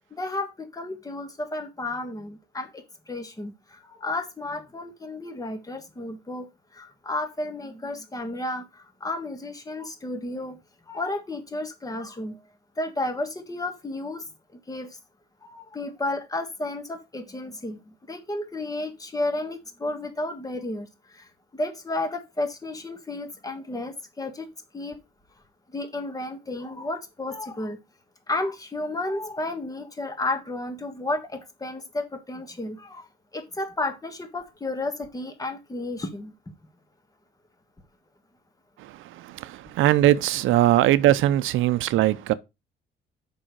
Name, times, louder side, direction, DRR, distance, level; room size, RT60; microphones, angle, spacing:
voice 1, 0.1-10.6 10.9-12.4 12.8-14.2 14.7-15.0 15.4-20.9 21.1-24.5 24.7-25.0 25.7-27.8 28.3-33.1 33.3-36.5, left 2 dB, 20° left, 1.5 m, -32 dB
voice 2, 38.8-42.3, right 14 dB, 85° right, 0.6 m, -21 dB
6.2 x 5.5 x 4.7 m
cardioid pair, 90°, 20 cm